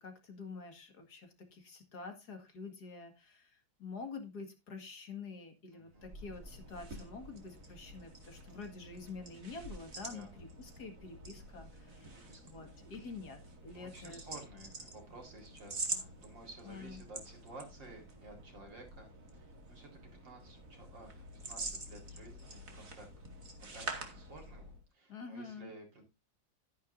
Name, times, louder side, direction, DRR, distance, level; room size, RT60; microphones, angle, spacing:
voice 1, 0.0-14.2 16.6-17.0 25.1-25.7, left 4 dB, 60° left, 6 dB, 2.5 m, -47 dB
voice 2, 5.7-6.1 10.1-10.5 12.0-12.7 13.7-19.9 20.2-23.1 23.7-26.0, right 2 dB, 75° right, 3 dB, 4.7 m, -53 dB
Removing belt, 5.9-24.8, right 3 dB, 45° right, 2.5 m, -47 dB
13.0 x 10.5 x 2.6 m, 0.24 s
omnidirectional pair, 2.0 m